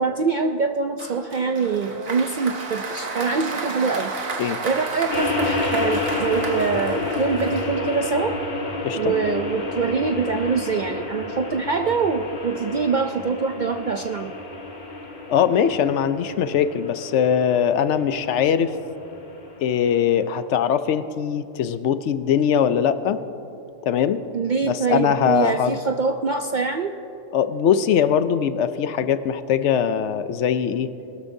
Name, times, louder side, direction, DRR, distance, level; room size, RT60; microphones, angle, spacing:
voice 1, 0.0-4.1 4.6-8.3 8.9-14.3 24.3-26.9, right 5 dB, 65° right, 5 dB, 0.4 m, -24 dB
Applause, 1.0-8.1, right 3 dB, 90° right, 1.6 m, -32 dB
sound 1, 5.1-20.4, left 2 dB, 50° left, 1.6 m, -30 dB
voice 2, 15.3-18.8 19.6-23.2 23.8-24.2 24.6-25.8 27.3-30.9, left 8 dB, 70° left, 11 dB, 0.8 m, -21 dB
21.0 x 12.5 x 2.7 m, 2.8 s
omnidirectional pair, 1.4 m